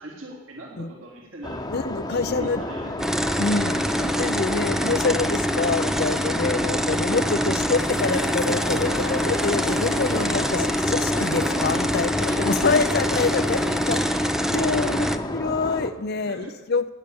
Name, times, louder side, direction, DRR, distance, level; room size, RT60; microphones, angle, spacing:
voice 1, 0.0-1.6 2.0-2.9 3.6-4.4 6.5-7.0 8.6-9.5 9.9-10.2 11.4-11.6 12.3-12.7 13.5-14.1 14.9-15.0 16.1-16.5, right 2 dB, 70° right, -2 dB, 3.5 m, -39 dB
sound 1, 1.4-15.9, left 1 dB, 20° left, 1.1 m, -31 dB
voice 2, 1.7-2.6 3.4-3.8 4.2-16.9, left 4 dB, 50° left, 13 dB, 0.6 m, -26 dB
sound 2, 3.0-15.2, equal, ahead, 0.6 m, -25 dB
sound 3, 7.8-14.0, left 5 dB, 90° left, 0.7 m, -34 dB
18.5 x 9.2 x 7.0 m, 1.2 s
head